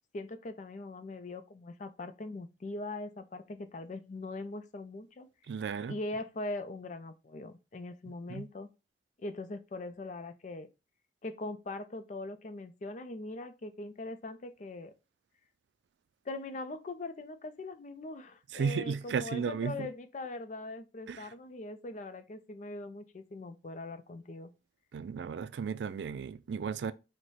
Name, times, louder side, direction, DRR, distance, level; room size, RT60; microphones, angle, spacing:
voice 1, 0.1-5.3 5.9-8.7 9.2-10.7 11.2-14.9 16.3-24.5, left 2 dB, 45° left, 0.4 m, -41 dB
voice 2, 5.5-6.0 8.3-8.5 18.5-19.9 21.1-21.3 24.9-26.9, right 6 dB, 80° right, 0.3 m, -34 dB
4.7 x 2.1 x 4.1 m
head